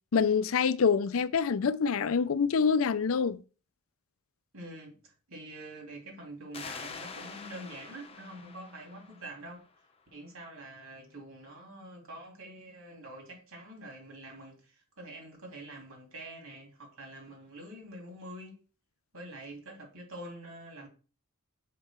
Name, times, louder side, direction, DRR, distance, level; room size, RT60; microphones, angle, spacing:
voice 1, 0.1-3.4, left 6 dB, 65° left, 0.5 m, -26 dB
voice 2, 4.5-9.7 10.1-18.6 19.1-20.9, right 1 dB, 75° right, 3.2 m, -46 dB
sound 1, 6.5-9.9, left 4 dB, 30° left, 0.8 m, -45 dB
6.8 x 5.4 x 4.5 m
head